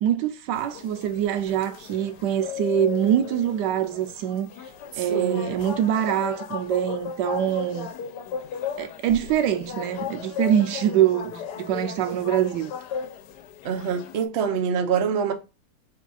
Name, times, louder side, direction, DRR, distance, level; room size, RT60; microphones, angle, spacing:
voice 1, 0.0-4.5 5.0-7.9 8.8-12.7, right 10 dB, 90° right, 1.2 m, -24 dB
sound 1, 0.5-14.2, left 8 dB, 80° left, 1.2 m, -36 dB
voice 2, 4.9-5.5 13.6-15.3, right 7 dB, 60° right, 0.7 m, -25 dB
4.4 x 2.3 x 3.9 m
omnidirectional pair, 1.8 m